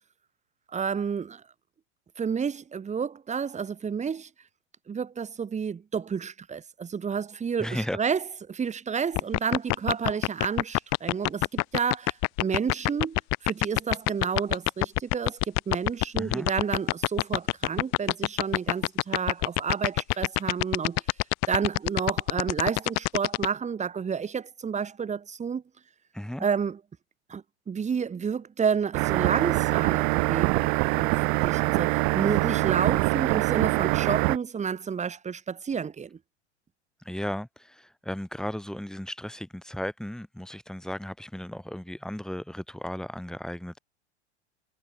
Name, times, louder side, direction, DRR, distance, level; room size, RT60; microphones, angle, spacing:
voice 1, 0.7-1.4 2.2-4.3 4.9-13.2 13.4-21.0 21.5-25.6 26.4-26.8 27.3-36.2, right 6 dB, 20° right, 4.9 m, -30 dB
voice 2, 7.6-8.0 16.2-16.5 26.1-26.5 37.0-43.8, equal, ahead, 6.6 m, -35 dB
sound 1, 9.1-23.5, left 29 dB, 45° left, 3.5 m, -24 dB
sound 2, 28.9-34.4, right 40 dB or more, 50° right, 2.3 m, -24 dB
hypercardioid pair, 100°, 35 cm